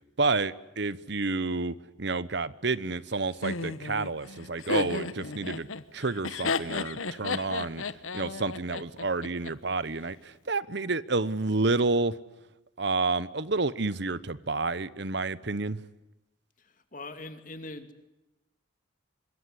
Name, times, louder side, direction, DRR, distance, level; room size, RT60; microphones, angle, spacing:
voice 1, 0.2-5.7 5.9-7.8 8.1-12.2 12.8-15.8, right 3 dB, 55° right, 17 dB, 0.9 m, -29 dB
Laughter, 3.4-9.5, left 4 dB, 85° left, 1.3 m, -33 dB
voice 2, 16.6-18.1, left 2 dB, 40° left, 8 dB, 2.6 m, -43 dB
26.0 x 22.0 x 9.8 m, 0.97 s
head